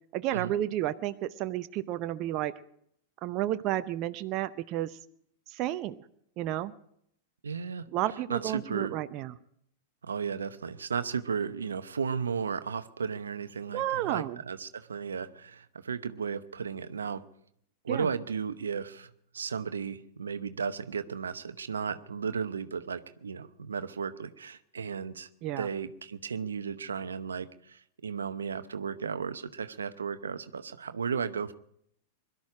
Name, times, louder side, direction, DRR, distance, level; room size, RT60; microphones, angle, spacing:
voice 1, 0.1-2.5 3.2-5.0 5.5-6.0 6.4-6.7 7.9-9.3 13.7-14.4 17.9-18.1 25.4-25.7, right 13 dB, 45° right, 11 dB, 0.7 m, -31 dB
voice 2, 7.4-7.9 8.3-8.9 10.0-17.2 17.8-25.3 25.6-31.5, right 6 dB, 80° right, 12 dB, 0.8 m, -34 dB
22.0 x 12.5 x 4.9 m, 0.71 s
hypercardioid pair, 100°, 0 cm